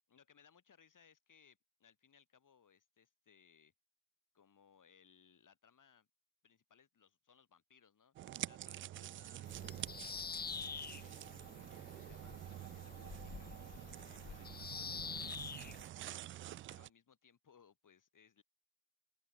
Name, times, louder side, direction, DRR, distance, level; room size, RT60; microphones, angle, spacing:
voice 1, 0.1-3.7 4.3-6.1 6.4-8.1 8.4-9.5 10.1-11.3 11.7-18.4, left 7 dB, 40° left, 7.9 m, -68 dB
sound 1, 8.2-16.9, right 13 dB, 30° right, 0.3 m, -48 dB
Bird vocalization bird call bird song, 9.5-15.9, left 6 dB, 20° left, 0.9 m, -47 dB
open air
figure-of-eight pair, 50°, 47 cm